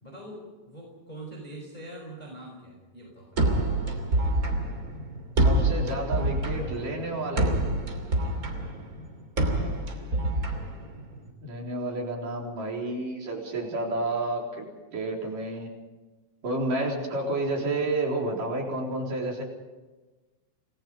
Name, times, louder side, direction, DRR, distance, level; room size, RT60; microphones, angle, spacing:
voice 1, 0.0-3.5 8.1-8.4, right 1 dB, 10° left, -2 dB, 5.0 m, -43 dB
sound 1, 3.4-11.3, right 1 dB, 25° right, 3.1 m, -27 dB
voice 2, 5.4-7.5 11.4-15.7 16.4-19.4, right 2 dB, 70° right, -1 dB, 5.4 m, -30 dB
29.0 x 19.5 x 5.3 m, 1.2 s
omnidirectional pair, 3.9 m